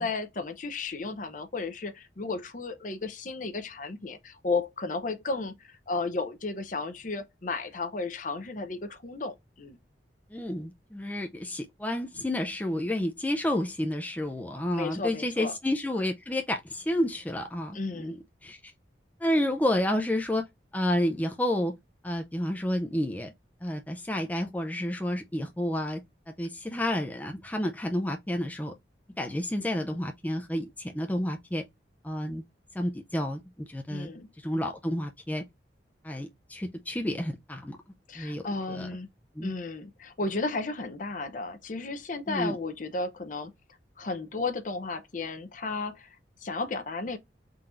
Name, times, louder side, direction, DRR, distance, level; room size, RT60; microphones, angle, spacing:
voice 1, 0.0-9.8 14.7-15.5 17.7-18.2 33.9-34.3 38.1-39.1 39.4-43.5 44.0-46.1 46.4-47.2, left 3 dB, 45° left, 0.7 m, -33 dB
voice 2, 10.3-18.1 18.4-18.7 19.2-20.4 20.7-21.7 22.0-23.3 23.6-26.0 26.3-28.7 29.2-31.6 32.0-32.4 32.7-34.1 34.4-35.4 36.0-37.8 38.2-38.4 38.7-38.9 39.4-39.5 42.3-42.6, left 1 dB, 10° left, 0.4 m, -30 dB
3.8 x 2.5 x 4.3 m
head